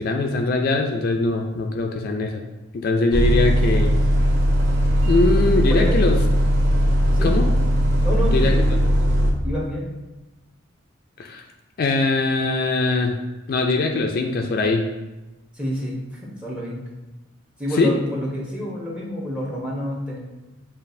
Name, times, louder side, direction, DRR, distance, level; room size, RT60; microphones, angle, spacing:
voice 1, 0.0-2.4 2.7-3.9 5.1-6.2 7.2-7.5 8.3-8.5 8.8-8.9 11.2-11.4 11.8-13.2 13.5-14.8 17.7-17.9, left 3 dB, 50° left, 3 dB, 0.3 m, -21 dB
Bus, 3.1-9.3, equal, 55° right, 0.7 m, -18 dB
voice 2, 8.0-8.7 9.4-9.9 15.5-16.8 17.6-20.2, equal, 5° right, -4 dB, 0.9 m, -28 dB
7.2 x 2.4 x 2.6 m, 1.1 s
head